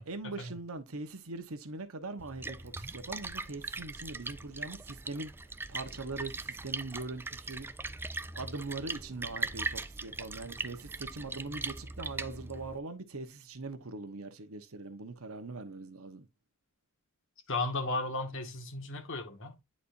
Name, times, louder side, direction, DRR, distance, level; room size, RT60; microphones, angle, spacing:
voice 1, 0.0-5.3 5.7-7.7 8.3-16.3, right 3 dB, 70° right, 1.1 m, -41 dB
Splash splatter, 2.2-12.8, right 3 dB, 10° right, 0.3 m, -40 dB
voice 2, 17.5-19.6, left 2 dB, 60° left, 1.6 m, -35 dB
10.0 x 4.2 x 2.6 m
head